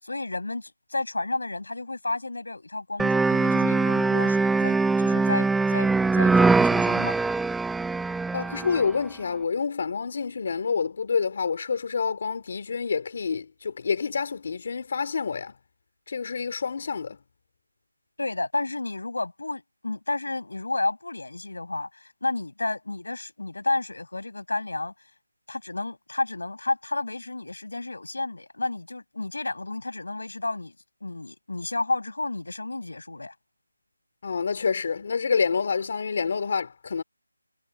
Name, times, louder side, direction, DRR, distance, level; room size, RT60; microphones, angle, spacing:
voice 1, 0.0-7.2 18.2-24.9 25.5-30.7 31.0-33.3, left 2 dB, 80° left, 7.6 m, -31 dB
sound 1, 3.0-8.9, right 3 dB, ahead, 1.2 m, -22 dB
voice 2, 8.3-15.5 16.1-17.2 34.2-37.0, left 5 dB, 35° left, 3.2 m, -27 dB
figure-of-eight pair, 175°, 0 cm